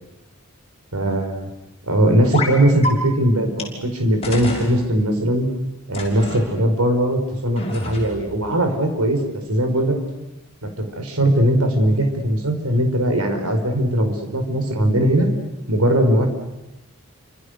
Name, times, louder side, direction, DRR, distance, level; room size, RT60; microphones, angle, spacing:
voice 1, 0.9-1.5 1.9-5.5 5.9-9.2 9.5-10.0 10.6-15.3 15.7-16.3, right 1 dB, 85° right, 5 dB, 5.0 m, -19 dB
sound 1, 2.3-2.5 2.8-2.9 3.6-3.7 4.2-4.7 5.9-6.4 7.6-8.3, left 2 dB, 25° left, 6.1 m, -27 dB
29.5 x 26.5 x 6.8 m, 0.96 s
head